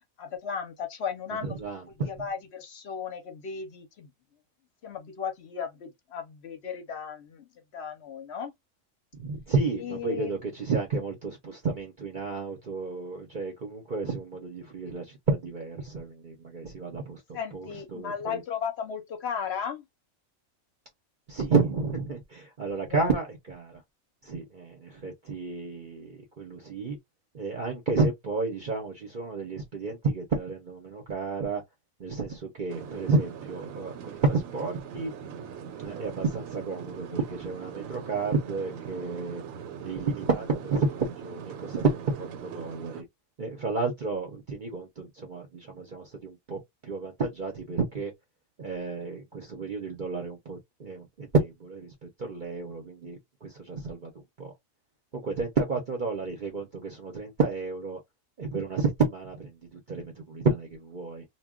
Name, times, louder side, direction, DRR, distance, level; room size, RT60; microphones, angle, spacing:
voice 1, 0.2-1.6 2.1-4.1 4.8-8.5 9.8-10.4 17.3-19.8 22.8-23.1, left 7 dB, 60° left, 0.8 m, -35 dB
voice 2, 1.3-2.3 9.1-18.4 21.3-23.8 24.2-27.0 27.3-31.6 32.0-35.1 35.7-39.4 39.8-43.0 43.4-48.1 48.6-54.1 54.4-54.5 55.1-58.0 58.4-61.2, right 4 dB, 45° right, 0.7 m, -31 dB
sound 1, 32.7-43.0, right 7 dB, 90° right, 1.0 m, -41 dB
2.2 x 2.2 x 3.5 m
omnidirectional pair, 1.4 m